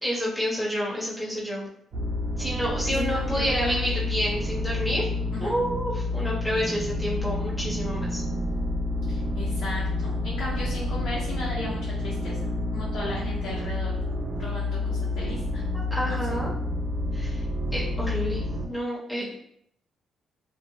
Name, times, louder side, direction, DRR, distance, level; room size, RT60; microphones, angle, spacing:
voice 1, 0.0-1.7 2.4-5.1 5.4-8.2 15.9-16.5 17.1-17.4 17.7-18.4 18.7-19.3, equal, 10° left, -7 dB, 1.2 m, -29 dB
sound 1, 1.9-18.7, left 2 dB, 50° right, 0.6 m, -29 dB
voice 2, 2.9-3.8 5.3-5.5 9.1-13.9 14.4-15.6 16.1-16.2 19.2-19.3, left 1 dB, 75° left, -7 dB, 0.8 m, -36 dB
2.4 x 2.2 x 3.1 m, 0.70 s
cardioid pair, 90°, 0 cm